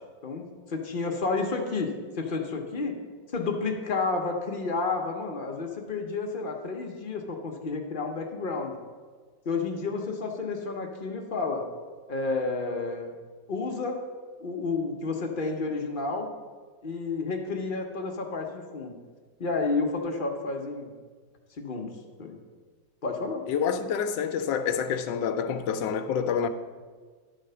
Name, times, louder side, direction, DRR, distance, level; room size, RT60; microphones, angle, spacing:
voice 1, 0.2-3.0 3.3-8.7 9.4-11.7 12.1-13.1 13.5-14.0 14.4-16.3 16.8-18.9 19.4-20.9 21.6-22.4 23.0-23.4, left 3 dB, 45° left, 0.7 m, -31 dB
voice 2, 23.5-26.5, left 7 dB, 80° left, 1.3 m, -27 dB
11.0 x 4.1 x 6.6 m
omnidirectional pair, 2.0 m